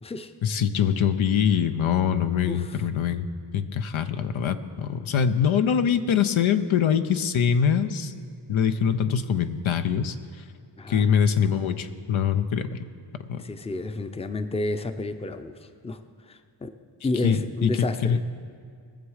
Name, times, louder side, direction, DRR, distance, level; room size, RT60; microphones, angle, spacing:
voice 1, 0.4-3.3 3.5-8.1 8.5-10.2 10.9-12.9 13.3-13.4 17.2-18.2, left 7 dB, 85° left, 9 dB, 0.7 m, -23 dB
voice 2, 2.5-2.8 10.8-11.1 13.4-16.0 16.3-16.7 17.0-18.2, left 2 dB, 15° left, 9 dB, 0.5 m, -31 dB
21.0 x 7.2 x 4.9 m, 2.2 s
wide cardioid pair, 85°, 46 cm